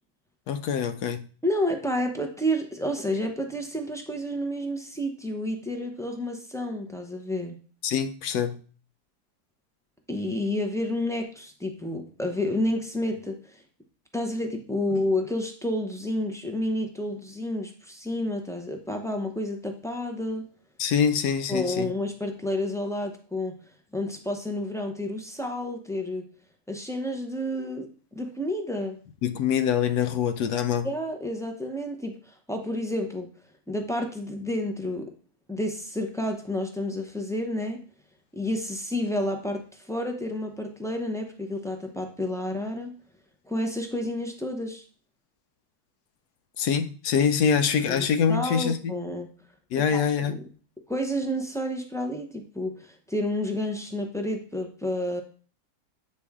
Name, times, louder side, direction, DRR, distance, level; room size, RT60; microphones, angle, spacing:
voice 1, 0.5-1.3 7.8-8.6 20.8-21.9 29.2-30.9 46.6-49.0 49.7-50.4, left 7 dB, 85° left, 1.2 m, -25 dB
voice 2, 1.4-7.6 10.1-13.6 14.1-20.5 21.5-23.5 23.9-26.3 26.7-29.0 30.8-33.3 33.7-35.1 35.5-37.8 38.3-42.9 43.5-44.9 47.9-49.3 49.9-50.0 50.3-50.4 50.9-55.2, left 1 dB, 5° left, 0.3 m, -30 dB
8.4 x 4.3 x 3.6 m
omnidirectional pair, 1.6 m